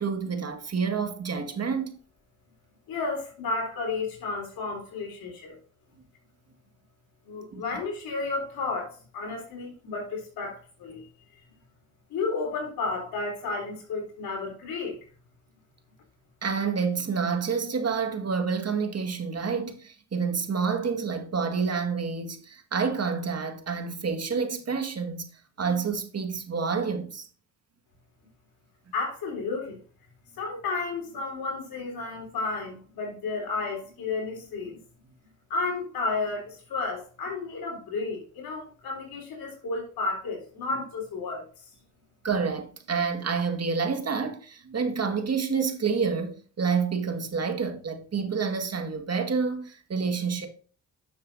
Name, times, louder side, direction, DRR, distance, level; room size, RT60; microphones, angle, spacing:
voice 1, 0.0-2.0 7.5-7.6 16.4-25.3 25.6-27.3 42.2-50.5, right 5 dB, 45° right, 1.8 m, -28 dB
voice 2, 2.9-5.5 7.3-11.1 12.1-15.0 28.9-29.8 30.4-34.8 35.5-41.4, left 3 dB, 75° left, 3.6 m, -32 dB
9.6 x 7.2 x 2.6 m
supercardioid pair, 60°, 36 cm